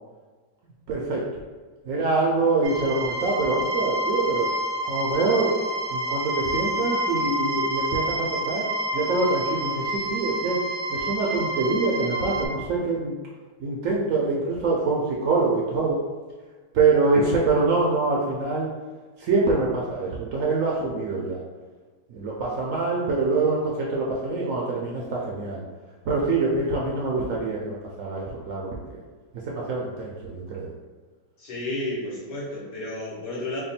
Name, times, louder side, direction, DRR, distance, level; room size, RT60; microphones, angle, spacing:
voice 1, 0.9-1.2 1.8-4.5 4.8-5.6 5.9-8.7 8.9-10.6 10.9-13.1 13.6-16.0 16.7-18.7 19.2-21.4 22.1-25.6 26.0-29.0 29.3-30.7, right 3 dB, 65° right, -3 dB, 0.8 m, -25 dB
sound 1, 2.6-12.5, right 1 dB, 85° right, 1.3 m, -28 dB
voice 2, 31.4-33.6, left 1 dB, 80° left, -7 dB, 1.8 m, -32 dB
3.5 x 2.2 x 4.1 m, 1.4 s
omnidirectional pair, 1.8 m